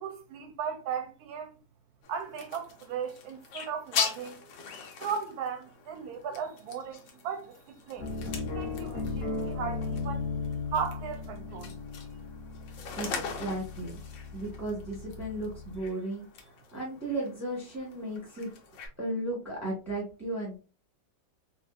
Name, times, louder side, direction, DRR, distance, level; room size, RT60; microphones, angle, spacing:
voice 1, 0.0-1.6 2.1-4.4 5.0-10.2 10.7-11.8, right 7 dB, 70° right, 1.0 m, -36 dB
sound 1, 2.0-18.9, left 6 dB, 80° left, 1.4 m, -41 dB
sound 2, 8.0-15.9, left 4 dB, 40° left, 1.0 m, -37 dB
voice 2, 13.4-14.0 14.3-16.3 16.7-18.5 19.0-20.6, right 1 dB, 10° right, 0.9 m, -35 dB
4.2 x 2.4 x 2.4 m
omnidirectional pair, 2.1 m